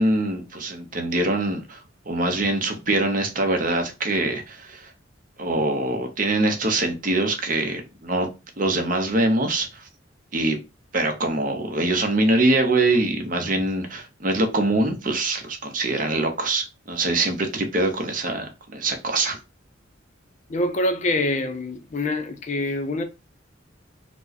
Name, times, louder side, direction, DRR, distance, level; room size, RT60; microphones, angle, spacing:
voice 1, 0.0-1.8 2.1-4.9 5.4-8.3 8.6-9.8 10.3-10.6 10.9-19.4, right 2 dB, 45° right, 0.7 m, -23 dB
voice 2, 20.5-23.0, left 1 dB, 40° left, 0.5 m, -25 dB
4.3 x 2.1 x 2.8 m
head